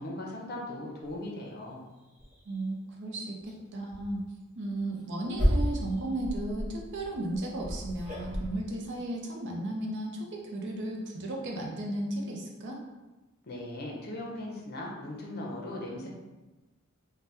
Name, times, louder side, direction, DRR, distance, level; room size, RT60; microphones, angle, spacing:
voice 1, 0.0-1.8 13.4-16.1, left 1 dB, 45° left, -2 dB, 0.6 m, -38 dB
sound 1, 1.1-1.2 1.7-1.8 2.1-2.6 3.4-3.5 3.9-4.1 4.7-8.5, equal, 40° right, 1.0 m, -32 dB
voice 2, 2.5-4.2 4.6-12.8, right 1 dB, 55° right, 0 dB, 0.5 m, -35 dB
2.7 x 2.1 x 3.3 m, 1.1 s
head